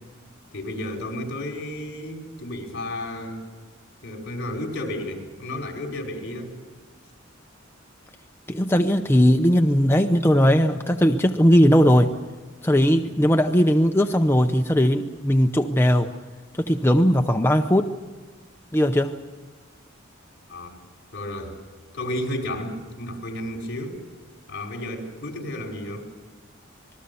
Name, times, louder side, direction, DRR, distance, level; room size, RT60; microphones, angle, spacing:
voice 1, 0.5-3.4 4.0-6.5 20.5-20.8 21.1-21.6 21.9-24.0 24.5-26.1, left 1 dB, 60° left, 1 dB, 5.1 m, -32 dB
voice 2, 8.5-12.1 12.6-16.1 16.7-17.9 18.7-19.2, equal, 10° left, 5 dB, 0.7 m, -18 dB
27.0 x 20.5 x 7.0 m, 1.4 s
head